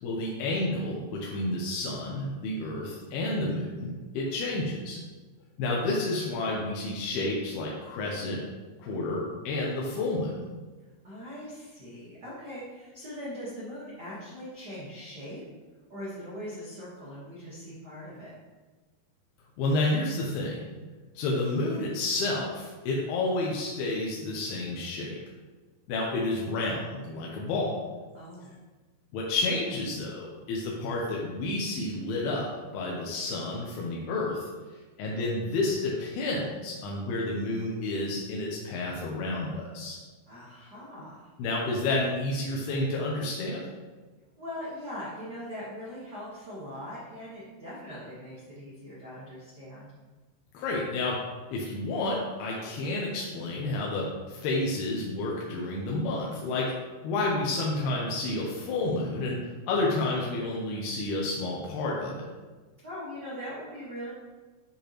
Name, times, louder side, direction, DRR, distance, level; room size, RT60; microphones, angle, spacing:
voice 1, 0.0-5.0 5.6-8.4 8.8-10.4 19.6-20.6 21.2-25.2 25.9-27.8 29.1-32.5 32.7-34.5 35.0-40.0 41.4-43.6 50.5-51.2 51.5-56.7 57.0-62.3, left 2 dB, 90° left, -3 dB, 2.8 m, -30 dB
voice 2, 11.0-15.4 15.9-18.3 28.1-28.5 40.3-41.3 44.4-49.9 62.8-64.1, equal, 65° right, -8 dB, 1.0 m, -41 dB
9.2 x 5.0 x 3.0 m, 1.3 s
omnidirectional pair, 4.4 m